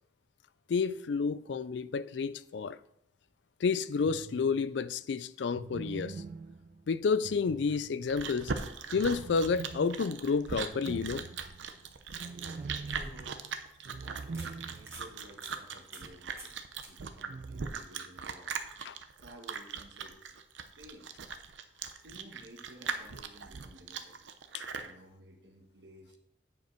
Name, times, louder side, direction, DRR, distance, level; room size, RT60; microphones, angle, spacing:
voice 1, 0.7-2.8 3.6-6.2 6.9-8.5 8.9-11.3 18.9-19.0 24.5-24.6, left 5 dB, 75° left, 0.4 m, -30 dB
sound 1, 4.0-4.7 5.5-8.3 8.9-15.1 15.4-15.5 17.3-17.7, right 4 dB, 45° right, 0.3 m, -44 dB
Chewing mastication, 7.7-24.9, right 5 dB, 90° right, 0.7 m, -40 dB
sound 2, 12.2-13.5 13.9-14.0 14.3-14.5 14.8-15.1 15.4-15.6 15.9-16.1 16.4-16.6 16.8-16.9 20.0-20.1, right 1 dB, 15° right, 1.7 m, -48 dB
voice 2, 13.8-16.5 16.9-18.5 19.2-20.4 20.8-21.1 22.0-24.2 24.8-26.2, right 1 dB, 70° right, 1.4 m, -54 dB
9.2 x 5.2 x 4.5 m
head